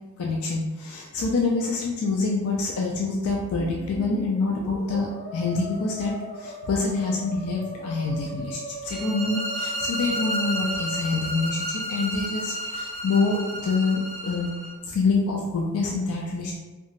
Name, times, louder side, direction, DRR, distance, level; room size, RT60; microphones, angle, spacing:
voice 1, 0.2-14.6 14.9-16.5, left 3 dB, 75° left, -1 dB, 0.3 m, -26 dB
Musical instrument, 3.3-12.1, right 1 dB, 25° left, 0.7 m, -39 dB
sound 1, 8.9-14.7, equal, 15° right, 0.6 m, -31 dB
2.8 x 2.2 x 2.8 m, 1.2 s
head